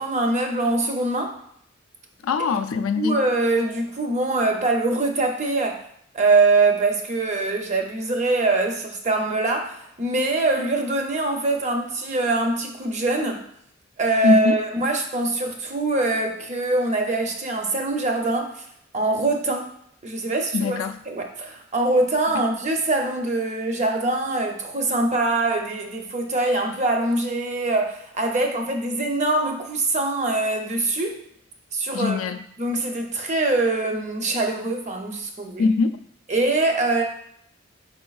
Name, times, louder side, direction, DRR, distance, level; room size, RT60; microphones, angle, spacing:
voice 1, 0.0-1.4 3.0-5.8 6.1-13.5 14.0-18.6 18.9-19.7 20.0-20.8 21.1-31.2 31.7-32.2 32.6-35.6 36.3-37.0, right 2 dB, 35° right, 3 dB, 0.6 m, -23 dB
voice 2, 2.2-3.2 14.2-14.6 20.5-21.0 22.3-22.4 31.9-32.4 35.6-36.1, left 4 dB, 80° left, 8 dB, 0.3 m, -22 dB
4.5 x 4.2 x 2.3 m, 0.71 s
head